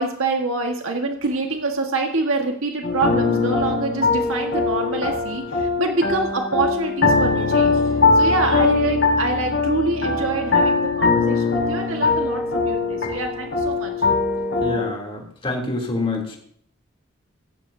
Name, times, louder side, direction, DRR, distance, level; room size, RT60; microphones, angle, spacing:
voice 1, 0.0-13.9, right 3 dB, 80° right, 3 dB, 1.6 m, -26 dB
sound 1, 2.8-14.9, left 3 dB, 65° left, 4.8 m, -21 dB
voice 2, 14.6-16.4, left 2 dB, 25° left, -1 dB, 3.0 m, -27 dB
16.5 x 14.5 x 2.7 m, 0.63 s
head